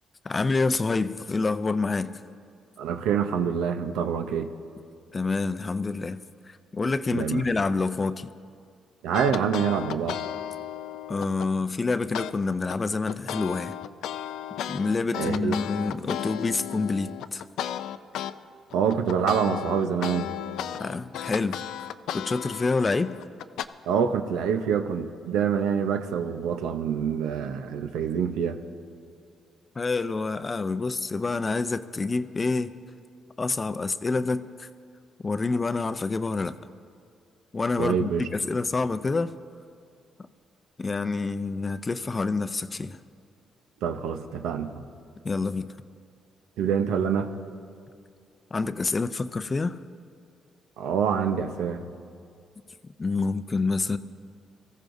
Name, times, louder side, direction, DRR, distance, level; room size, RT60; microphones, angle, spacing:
voice 1, 0.2-2.2 5.1-8.3 11.1-13.8 14.7-17.4 20.7-21.6 22.1-23.2 29.8-32.8 33.4-34.7 35.2-36.6 37.5-39.3 40.8-43.0 45.2-45.7 48.5-49.8 53.0-54.0, left 3 dB, 30° left, 12 dB, 0.5 m, -27 dB
voice 2, 2.8-4.5 7.1-7.4 9.0-10.2 15.2-15.5 18.7-20.3 23.9-28.6 37.8-38.3 43.8-44.7 46.6-47.3 50.8-51.8, right 7 dB, 90° right, 7 dB, 0.8 m, -26 dB
sound 1, 9.1-11.5 12.1-12.3 12.7-18.3 18.7-23.6, left 10 dB, 85° left, 0.4 m, -34 dB
23.0 x 14.5 x 2.7 m, 2.3 s
cardioid pair, 90°, 0 cm